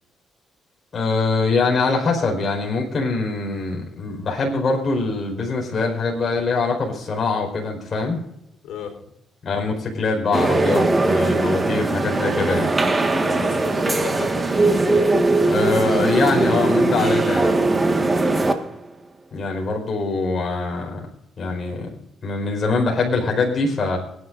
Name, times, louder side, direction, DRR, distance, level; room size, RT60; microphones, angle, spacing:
voice 1, 0.9-8.2 9.4-12.7 15.4-17.5 19.3-21.1 21.4-21.9 22.2-24.0, left 3 dB, 45° left, 0 dB, 4.7 m, -23 dB
voice 2, 8.6-9.0 12.8-15.0, left 7 dB, 90° left, 4 dB, 3.9 m, -36 dB
sound 1, 10.3-18.7, right 2 dB, 25° right, 1.6 m, -20 dB
25.0 x 10.5 x 2.6 m, 0.79 s
cardioid pair, 90°, 0 cm